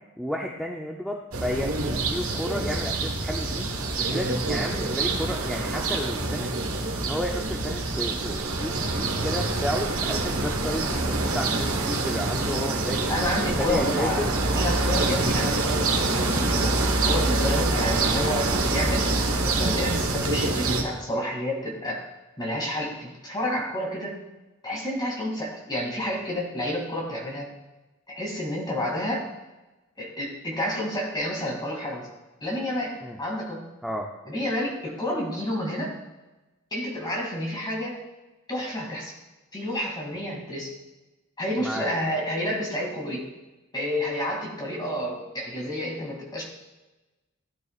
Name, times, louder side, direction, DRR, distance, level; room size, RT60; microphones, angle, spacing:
voice 1, 0.2-3.7 4.0-6.5 7.0-13.1 13.5-14.3 33.0-33.2 33.8-34.1 41.6-41.8, equal, ahead, -1 dB, 0.6 m, -32 dB
sound 1, 1.3-20.8, right 2 dB, 85° right, 1.4 m, -26 dB
voice 2, 13.1-14.2 14.5-16.7 17.0-22.0 22.4-24.2 24.6-27.5 28.1-29.3 30.0-32.1 32.4-33.6 34.3-35.9 36.7-38.0 38.5-39.1 39.5-40.7 41.4-43.2 43.7-46.4, left 1 dB, 20° left, -2 dB, 2.6 m, -30 dB
15.0 x 9.1 x 2.4 m, 1.1 s
head